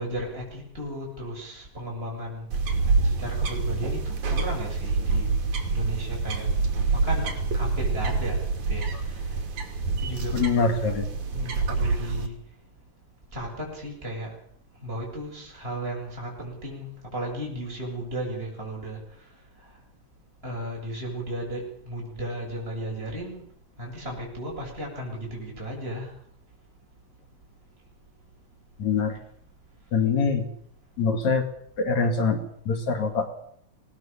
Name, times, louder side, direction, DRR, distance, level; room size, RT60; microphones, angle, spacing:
voice 1, 0.0-2.5 2.7-5.3 5.7-6.5 6.9-8.4 8.7-9.4 10.0-10.4 11.3-12.4 13.3-14.3 14.8-19.3 19.6-19.8 20.4-23.5 23.8-26.1, right 1 dB, 15° right, -2 dB, 7.8 m, -35 dB
sound 1, 2.5-12.3, right 4 dB, 70° right, 4.0 m, -26 dB
voice 2, 10.3-11.1 28.8-29.2 29.9-30.5 31.0-31.5 31.8-33.3, left 5 dB, 65° left, 5 dB, 3.5 m, -24 dB
23.0 x 19.0 x 7.2 m, 0.68 s
omnidirectional pair, 3.5 m